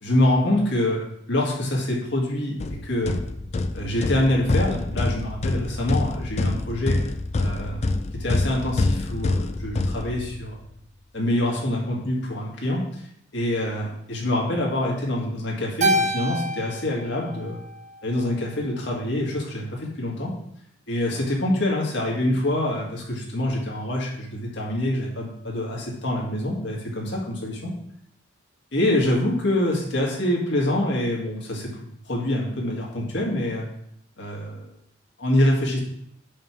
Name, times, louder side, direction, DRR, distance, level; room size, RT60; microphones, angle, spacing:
voice 1, 0.0-2.5 2.8-3.2 3.7-7.0 7.4-7.8 8.1-10.6 11.1-13.0 13.3-17.6 18.0-20.3 20.9-27.7 28.7-31.7 32.1-33.7 34.2-34.7 35.2-35.8, left 1 dB, 60° left, -2 dB, 1.9 m, -25 dB
sound 1, 2.6-10.6, left 2 dB, 35° left, 0.4 m, -26 dB
Keyboard (musical), 15.8-18.3, right 1 dB, 40° right, 0.9 m, -27 dB
5.3 x 5.2 x 6.2 m, 0.71 s
head